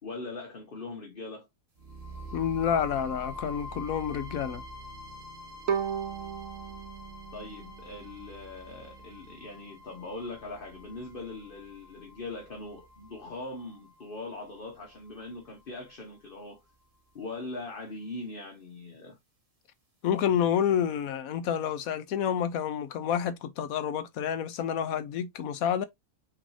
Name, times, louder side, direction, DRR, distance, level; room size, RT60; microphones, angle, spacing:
voice 1, 0.0-1.5 7.3-16.6 17.1-19.2, left 2 dB, 40° left, 1.2 m, -41 dB
sound 1, 1.8-15.8, equal, 25° right, 1.7 m, -46 dB
voice 2, 2.3-4.6 20.0-25.8, left 8 dB, 80° left, 1.1 m, -29 dB
Bowed string instrument, 5.7-8.7, right 7 dB, 70° right, 1.1 m, -35 dB
6.0 x 3.2 x 2.7 m
omnidirectional pair, 1.5 m